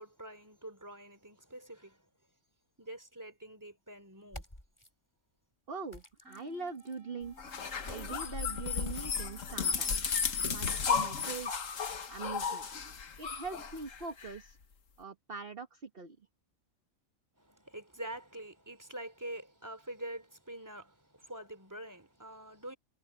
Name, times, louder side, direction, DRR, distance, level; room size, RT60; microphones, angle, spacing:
voice 1, 0.0-2.1 2.8-4.4 17.4-22.8, right 1 dB, 15° right, 3.1 m, -46 dB
sound 1, 4.2-4.9 5.9-7.0 7.8-10.1, left 1 dB, 20° left, 5.1 m, -53 dB
voice 2, 5.7-7.3 7.8-11.8 12.1-12.7 13.2-14.6 15.0-16.2, right 4 dB, 45° right, 1.6 m, -43 dB
sound 2, 6.2-11.3, right 1 dB, 85° right, 8.2 m, -60 dB
sound 3, 7.4-14.3, left 6 dB, 65° left, 1.7 m, -34 dB
omnidirectional pair, 1.4 m